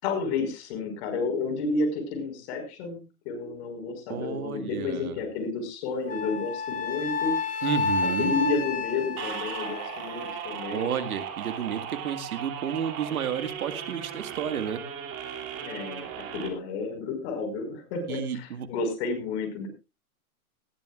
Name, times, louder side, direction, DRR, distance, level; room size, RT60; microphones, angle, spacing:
voice 1, 0.0-7.3 7.6-7.7 8.0-10.9 15.6-19.7, left 3 dB, 50° left, 8 dB, 5.1 m, -31 dB
voice 2, 4.1-5.2 7.6-8.3 10.7-14.8 18.1-18.7, right 8 dB, 75° right, 10 dB, 1.9 m, -31 dB
Wind instrument woodwind instrument, 6.1-10.4, left 4 dB, 15° left, 2.0 m, -30 dB
sound 1, 9.2-16.5, right 8 dB, 35° right, 2.9 m, -37 dB
19.0 x 14.5 x 2.4 m, 0.27 s
hypercardioid pair, 130°, 43 cm